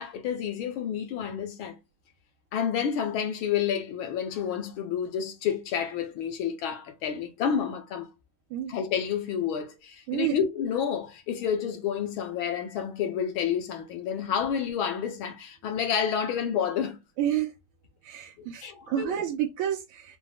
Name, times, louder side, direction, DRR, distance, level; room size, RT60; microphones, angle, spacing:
voice 1, 0.0-1.8 2.5-8.1 8.7-17.0 18.4-19.2, left 8 dB, 75° left, 1.6 m, -29 dB
voice 2, 17.2-17.5 18.0-20.2, right 11 dB, 90° right, 1.6 m, -29 dB
5.3 x 2.1 x 3.4 m
omnidirectional pair, 2.4 m